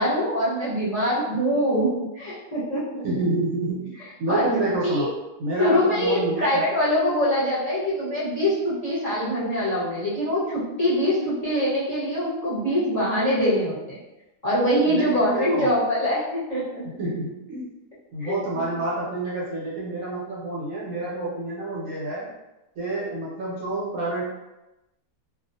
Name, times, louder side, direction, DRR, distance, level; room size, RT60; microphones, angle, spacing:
voice 1, 0.0-3.0 4.3-4.5 4.8-5.1 5.6-14.0 14.4-17.0 18.2-18.4, equal, 30° left, -11 dB, 0.9 m, -24 dB
voice 2, 3.0-3.9 4.2-5.1 5.4-6.6 14.8-15.7 17.0-17.7 18.1-22.3 22.8-24.2, right 2 dB, 65° right, -6 dB, 1.0 m, -28 dB
2.4 x 2.3 x 2.6 m, 0.98 s
omnidirectional pair, 1.7 m